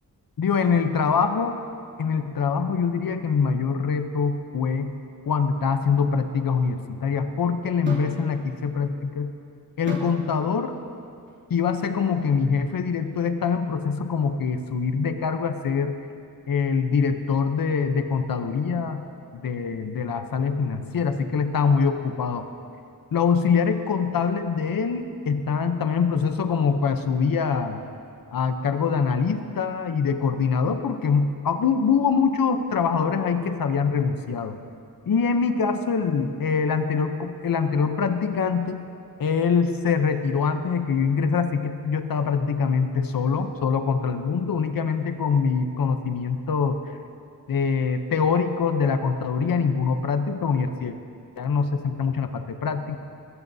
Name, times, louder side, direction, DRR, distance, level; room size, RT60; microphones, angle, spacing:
voice 1, 0.4-1.6 2.0-4.9 5.3-9.3 9.8-10.7 11.5-16.0 16.5-19.0 19.3-22.5 23.1-27.8 28.3-34.6 35.1-38.8 39.2-46.8 47.5-50.9 51.4-53.0, left 5 dB, 70° left, 7 dB, 0.8 m, -24 dB
sound 1, 7.8-8.2 9.9-10.2 11.2-11.4, equal, 30° right, 2.9 m, -34 dB
21.5 x 15.0 x 2.7 m, 2.4 s
wide cardioid pair, 105°, 35 cm